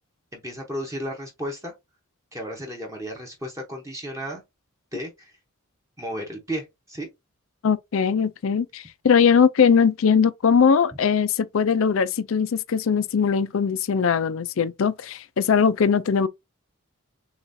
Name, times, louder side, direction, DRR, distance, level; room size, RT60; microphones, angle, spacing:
voice 1, 0.3-1.7 2.3-4.4 4.9-5.3 6.0-7.1, equal, 15° right, 0.8 m, -33 dB
voice 2, 7.6-16.3, left 6 dB, 65° left, 0.4 m, -20 dB
7.0 x 2.4 x 2.7 m
head